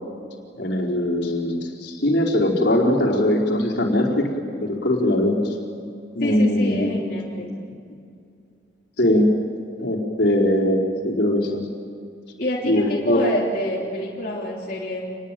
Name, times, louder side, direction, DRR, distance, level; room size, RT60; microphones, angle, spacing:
voice 1, 0.6-4.3 4.6-5.4 6.1-7.0 9.0-9.3 9.8-11.6 12.6-13.2, left 1 dB, 65° left, -1 dB, 4.5 m, -21 dB
voice 2, 6.2-7.5 12.4-15.1, equal, 45° left, -5 dB, 3.3 m, -27 dB
28.5 x 21.0 x 9.1 m, 2.4 s
head